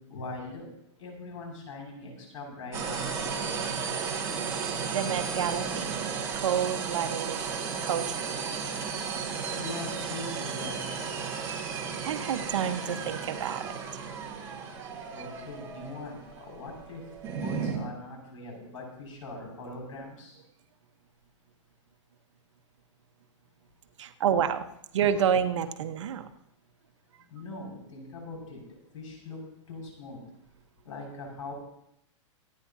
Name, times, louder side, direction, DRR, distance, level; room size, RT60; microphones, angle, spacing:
voice 1, 0.1-0.7 1.0-3.8 9.5-11.2 15.1-17.0 17.3-20.4 27.3-28.6 28.9-29.4 29.7-30.2 30.9-31.5, left 2 dB, 85° left, 0 dB, 5.8 m, -41 dB
sound 1, 2.7-17.8, right 6 dB, 20° right, 2.0 m, -34 dB
voice 2, 4.9-8.4 11.8-14.0 14.6-14.9 24.0-24.7 24.9-26.3, right 8 dB, 70° right, 8 dB, 1.1 m, -30 dB
25.5 x 9.6 x 2.7 m, 0.78 s
hypercardioid pair, 160°, 16 cm